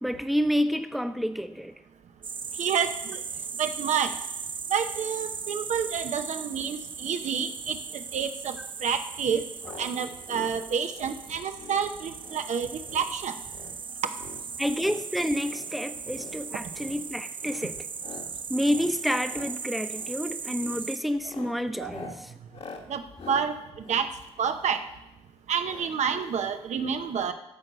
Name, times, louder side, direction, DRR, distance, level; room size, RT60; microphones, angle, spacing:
voice 1, 0.0-1.7 14.6-17.7 18.5-22.1, equal, ahead, 9 dB, 0.9 m, -29 dB
sound 1, 2.2-21.0, right 6 dB, 45° right, 0.5 m, -38 dB
voice 2, 2.6-3.2 3.6-4.1 4.7-8.6 8.8-9.4 9.8-13.3 21.8-22.1 22.9-23.0 23.3-23.5 23.9-24.1 24.4-24.8 25.5-27.3, right 7 dB, 75° right, 8 dB, 0.9 m, -29 dB
sound 2, 9.6-9.9 10.2-10.5 10.9-11.2 11.5-11.8 12.2-12.5 12.8-13.1 13.4-13.8 14.1-15.0 15.4-15.7 16.1-16.3 16.7-17.0 17.4-17.7 18.0-18.3 18.6-18.9 19.2-19.5 19.9-20.2 20.5-20.8 21.2-24.9 25.6-25.9 26.2-26.3 26.5-26.6, left 4 dB, 55° left, 1.7 m, -45 dB
13.0 x 4.7 x 6.9 m, 0.89 s
supercardioid pair, 55°, 12 cm